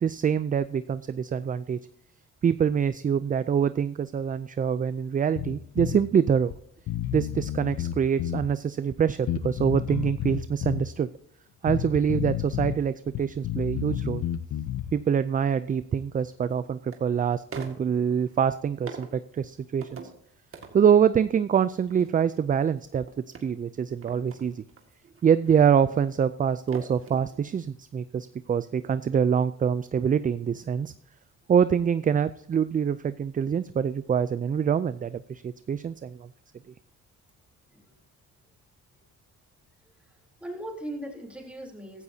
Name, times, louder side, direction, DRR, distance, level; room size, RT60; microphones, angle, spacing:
voice 1, 0.0-1.8 2.4-6.5 7.1-11.1 11.6-14.2 14.9-20.0 20.7-23.0 23.4-24.6 25.2-30.9 31.5-36.3, right 7 dB, 30° right, 14 dB, 0.4 m, -25 dB
Bass guitar, 5.4-6.0 6.5-6.6 6.9-8.5 9.3-10.9 11.7-12.8 13.1-14.9, left 11 dB, 70° left, 0.7 m, -31 dB
sound 1, 14.6-14.7 16.0-17.0 17.5-18.4 18.9-19.2 19.8-20.2 20.5-21.1 21.5-27.4 27.6-27.7, right 4 dB, 45° right, 2.0 m, -45 dB
voice 2, 37.7-38.0 39.8-42.0, right 1 dB, 5° right, 0 dB, 3.6 m, -40 dB
15.5 x 13.0 x 2.8 m, 0.68 s
cardioid pair, 90°, 30 cm